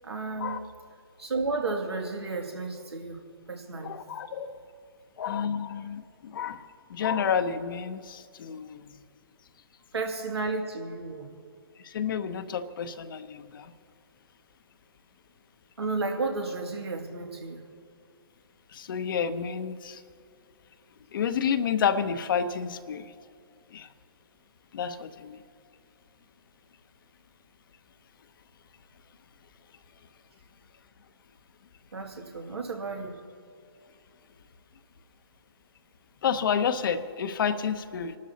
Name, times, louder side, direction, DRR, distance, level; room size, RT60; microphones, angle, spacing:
voice 1, 0.0-0.6 1.2-3.2 3.5-3.9 9.9-11.3 15.8-17.6 31.9-33.2, right 3 dB, 85° right, 1 dB, 2.4 m, -32 dB
voice 2, 3.8-4.6 5.2-6.6 6.9-8.9 11.8-13.7 18.7-20.0 21.1-23.1 23.7-23.9 24.7-25.4 36.2-38.2, left 7 dB, 55° left, 10 dB, 0.8 m, -30 dB
28.5 x 12.5 x 2.9 m, 2.3 s
hypercardioid pair, 140°, 13 cm